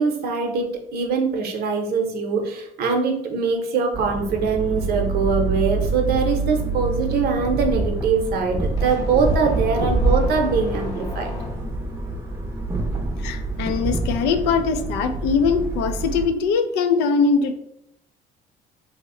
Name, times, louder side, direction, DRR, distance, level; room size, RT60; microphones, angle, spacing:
voice 1, 0.0-11.3, right 5 dB, 70° right, 3 dB, 0.7 m, -23 dB
sound 1, 3.9-16.3, right 3 dB, 15° right, 0.6 m, -26 dB
sound 2, 8.8-12.0, left 1 dB, 25° left, 0.8 m, -34 dB
voice 2, 13.2-17.5, left 5 dB, 90° left, 8 dB, 0.4 m, -21 dB
2.9 x 2.1 x 3.7 m, 0.77 s
cardioid pair, 110°, 17 cm